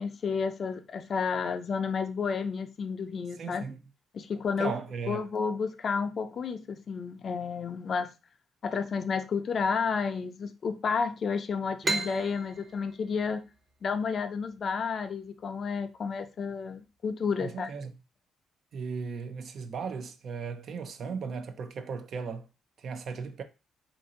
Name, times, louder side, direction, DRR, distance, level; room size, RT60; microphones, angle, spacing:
voice 1, 0.0-3.7 4.1-4.7 5.1-8.1 8.6-13.4 13.8-17.7, left 5 dB, 50° left, 0.4 m, -31 dB
voice 2, 3.4-3.8 4.6-5.3 17.4-17.9 18.7-22.5 22.8-23.4, right 5 dB, 60° right, 0.5 m, -36 dB
sound 1, 11.8-15.2, right 2 dB, 30° right, 0.8 m, -35 dB
3.0 x 2.6 x 3.7 m
cardioid pair, 90°, 0 cm